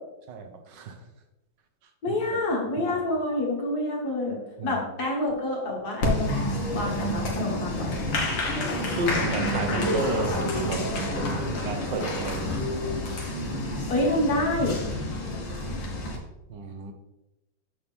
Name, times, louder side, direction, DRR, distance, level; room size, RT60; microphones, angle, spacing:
voice 1, 0.3-1.1 1.8-2.2 2.8-3.0 4.6-4.8 8.9-10.9 11.1-12.6 16.5-16.9, right 3 dB, 65° right, 5 dB, 1.5 m, -32 dB
voice 2, 2.0-8.0 13.9-14.8, left 1 dB, 50° left, -2 dB, 2.3 m, -27 dB
Applause, 6.0-16.2, left 1 dB, 65° left, 2.0 m, -29 dB
7.0 x 6.3 x 3.5 m, 0.94 s
omnidirectional pair, 2.2 m